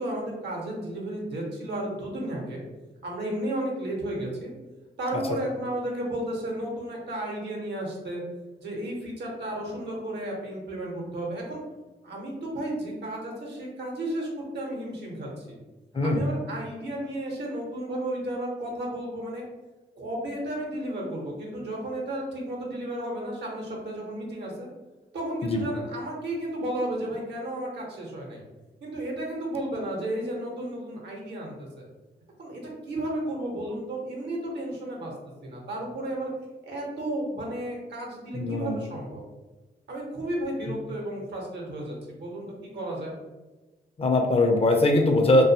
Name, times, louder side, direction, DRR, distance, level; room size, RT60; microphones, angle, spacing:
voice 1, 0.0-2.6 3.0-4.5 5.0-8.2 8.6-11.6 12.0-15.6 16.0-19.4 20.0-24.7 25.1-28.4 28.8-31.9 32.4-35.1 35.4-36.3 36.6-39.2 39.9-43.1, right 1 dB, 75° right, -1 dB, 0.8 m, -33 dB
voice 2, 15.9-16.3 25.4-25.6 38.3-38.8 44.0-45.4, left 2 dB, 35° left, 3 dB, 0.5 m, -21 dB
2.5 x 2.2 x 2.7 m, 1.2 s
cardioid pair, 65°, 18 cm